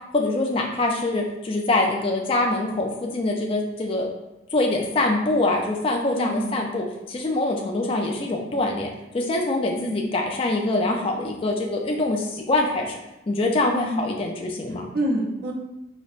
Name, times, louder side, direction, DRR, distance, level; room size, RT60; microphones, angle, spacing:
voice 1, 0.1-4.1 4.5-8.9 9.1-13.0 13.3-14.9, left 2 dB, 30° left, 1 dB, 0.4 m, -24 dB
voice 2, 6.2-6.6 9.7-10.1 13.7-14.1 14.9-15.5, equal, 55° right, 0 dB, 0.5 m, -27 dB
5.0 x 2.1 x 2.4 m, 0.95 s
head